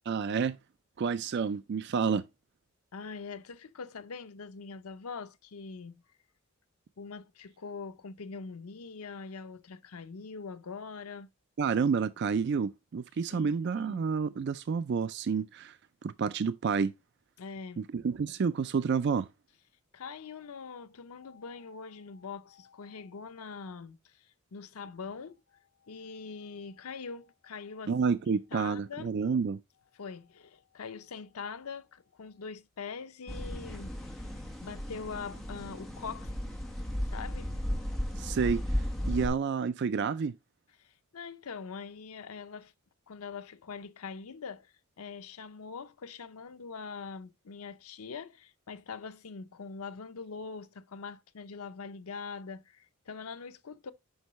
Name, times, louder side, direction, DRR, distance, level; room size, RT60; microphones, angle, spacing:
voice 1, 0.1-0.6 1.0-2.3 11.6-15.8 16.0-16.9 17.8-19.3 27.9-29.6 38.2-40.3, right 5 dB, 50° right, 0.3 m, -29 dB
voice 2, 2.9-5.9 7.0-11.3 13.3-14.1 17.4-17.9 19.9-28.0 28.3-29.1 29.9-34.3 34.6-36.3 37.1-37.5 40.8-42.7 43.1-53.9, left 5 dB, 80° left, 0.6 m, -43 dB
sound 1, 33.3-39.3, equal, ahead, 1.4 m, -35 dB
8.0 x 5.5 x 3.0 m
head